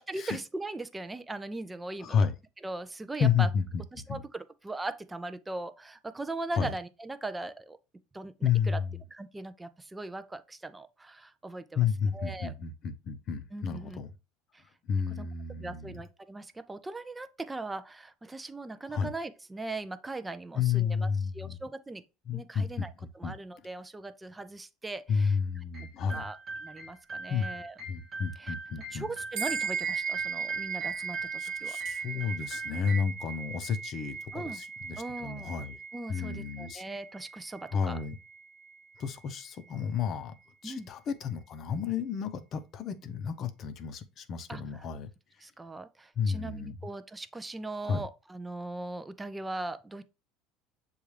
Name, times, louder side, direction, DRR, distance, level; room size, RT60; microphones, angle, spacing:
voice 1, 0.0-2.3 2.6-3.5 3.9-7.8 8.1-8.8 9.1-12.5 13.5-14.0 14.5-14.7 15.1-15.3 15.6-22.0 22.3-25.4 26.1-27.8 28.4-28.5 28.9-31.8 34.3-34.6 35.0-35.5 35.9-38.0 40.6-40.9 44.5-44.9 45.4-50.0, right 2 dB, 10° right, 0.4 m, -39 dB
voice 2, 2.0-2.3 3.2-3.6 4.1-4.2 6.6-6.7 8.4-8.8 11.8-14.1 14.9-16.0 18.9-19.1 20.6-21.6 22.3-22.9 23.2-23.3 25.1-26.2 27.3-27.5 27.9-29.0 31.4-35.7 36.1-36.8 37.7-38.1 39.0-40.3 40.6-45.1 46.2-46.7 47.8-48.0, left 6 dB, 45° left, 0.6 m, -31 dB
sound 1, 25.7-33.0, right 3 dB, 30° right, 0.9 m, -41 dB
sound 2, 29.3-39.1, right 6 dB, 65° right, 1.2 m, -38 dB
6.9 x 2.4 x 3.1 m
supercardioid pair, 120°, 0 cm